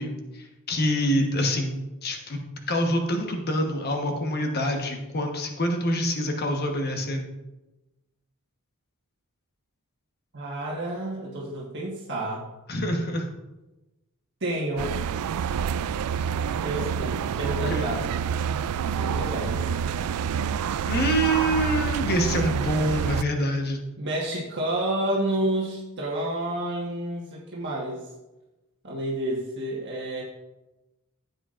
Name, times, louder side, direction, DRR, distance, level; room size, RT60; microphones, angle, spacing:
voice 1, 0.0-2.4 2.7-7.2 12.7-13.3 17.7-17.9 20.8-23.8, equal, 45° left, 3 dB, 1.2 m, -26 dB
voice 2, 10.3-12.5 14.4-15.0 16.6-18.0 18.9-19.6 24.0-28.1 28.8-30.2, right 1 dB, 55° right, -4 dB, 1.5 m, -30 dB
sound 1, 14.8-23.2, right 7 dB, 85° right, 0.3 m, -27 dB
14.5 x 8.1 x 2.5 m, 1.0 s
head